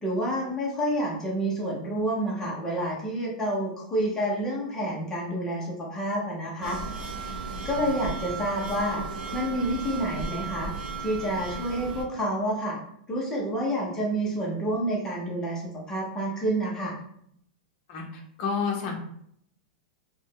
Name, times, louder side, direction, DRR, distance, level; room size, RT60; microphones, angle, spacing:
voice 1, 0.0-6.8 7.6-9.0 9.3-10.7 11.0-12.8 13.1-17.0, right 1 dB, 10° left, -4 dB, 0.9 m, -29 dB
sound 1, 6.6-12.0, right 4 dB, 85° right, 0.6 m, -35 dB
voice 2, 17.9-19.0, left 5 dB, 45° left, 1 dB, 0.9 m, -30 dB
3.1 x 2.6 x 3.7 m, 0.69 s
supercardioid pair, 155°, 5 cm